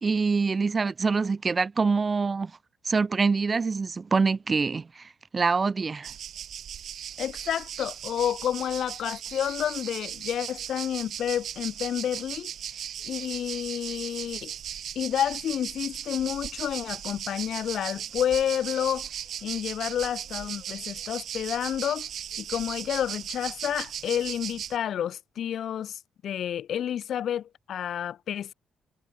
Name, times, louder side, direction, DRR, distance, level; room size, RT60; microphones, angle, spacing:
voice 1, 0.0-2.5 2.8-6.1, right 4 dB, 30° right, 2.8 m, -25 dB
sound 1, 6.0-24.8, right 9 dB, 65° right, 3.1 m, -37 dB
voice 2, 7.2-12.5 13.0-14.5 14.9-19.1 19.4-22.1 22.4-28.5, left 10 dB, 65° left, 3.0 m, -30 dB
cardioid pair, 90°, 0 cm